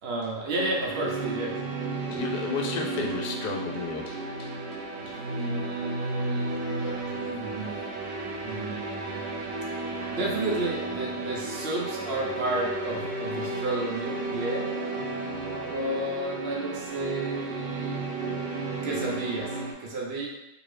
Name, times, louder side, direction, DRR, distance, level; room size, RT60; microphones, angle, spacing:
voice 1, 0.0-1.6 5.1-7.9 8.4-9.4 10.1-14.7 15.6-18.1 18.7-20.3, right 2 dB, 65° right, -2 dB, 0.6 m, -33 dB
sound 1, 0.5-19.7, right 2 dB, 80° right, 1.2 m, -33 dB
voice 2, 2.0-4.5 5.1-5.2, left 5 dB, 75° left, 1 dB, 1.0 m, -33 dB
2.8 x 2.7 x 3.2 m, 0.92 s
omnidirectional pair, 1.8 m